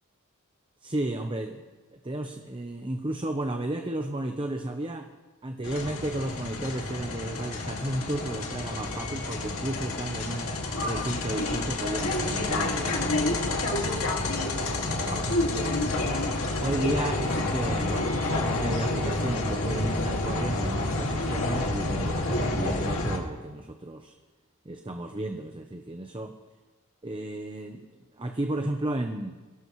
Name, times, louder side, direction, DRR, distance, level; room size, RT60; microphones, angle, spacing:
voice 1, 0.8-1.7 1.9-5.1 5.4-10.5 10.8-14.3 14.6-15.6 16.6-24.1 24.6-26.3 27.0-27.9 28.2-29.4, right 1 dB, 25° right, 5 dB, 0.8 m, -33 dB
sound 1, 5.6-23.2, left 2 dB, 65° left, 2.2 m, -29 dB
23.0 x 17.0 x 3.1 m, 1.3 s
head